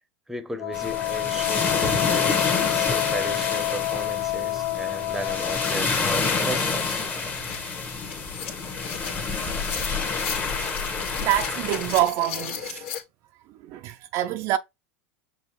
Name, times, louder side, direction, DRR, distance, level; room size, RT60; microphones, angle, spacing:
voice 1, 0.3-7.1, right 1 dB, 5° right, 0.8 m, -35 dB
Wind instrument woodwind instrument, 0.6-5.8, left 18 dB, 60° left, 0.4 m, -28 dB
sound 1, 0.7-12.0, left 4 dB, 25° left, 1.1 m, -28 dB
sound 2, 6.2-13.0, left 7 dB, 75° left, 1.6 m, -37 dB
voice 2, 11.2-12.8 13.7-14.6, right 14 dB, 50° right, 0.4 m, -26 dB
6.2 x 2.5 x 3.0 m
supercardioid pair, 120°, 7 cm